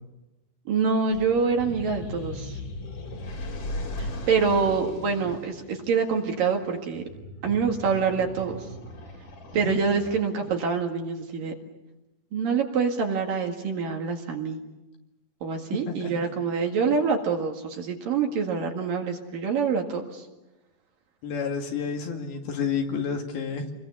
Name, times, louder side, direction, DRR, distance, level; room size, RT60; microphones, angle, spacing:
voice 1, 0.7-2.6 4.0-7.0 7.4-8.6 9.5-11.5 12.3-14.6 15.4-20.2, right 5 dB, 60° right, 2 dB, 3.4 m, -26 dB
sound 1, 1.1-10.6, left 1 dB, 45° left, 4.3 m, -38 dB
voice 2, 21.2-23.7, left 6 dB, 65° left, 2 dB, 4.0 m, -30 dB
28.5 x 22.0 x 7.1 m, 1.0 s
omnidirectional pair, 4.9 m